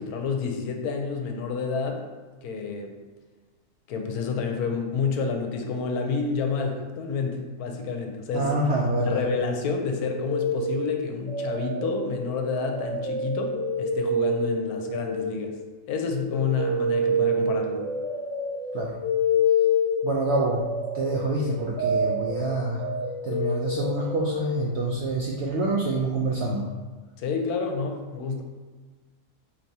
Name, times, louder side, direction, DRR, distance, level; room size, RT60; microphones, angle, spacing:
voice 1, 0.0-2.0 2.4-2.9 3.9-8.5 9.1-15.6 15.9-17.8 27.2-28.4, left 5 dB, 75° left, 3 dB, 1.0 m, -29 dB
voice 2, 8.3-9.2 18.7-19.0 20.0-20.6 20.9-22.8 23.2-26.7, right 2 dB, 75° right, -3 dB, 0.6 m, -26 dB
sound 1, 9.8-15.8 16.0-24.6, left 1 dB, 25° left, 0.7 m, -28 dB
4.5 x 2.9 x 2.7 m, 1.4 s
omnidirectional pair, 1.6 m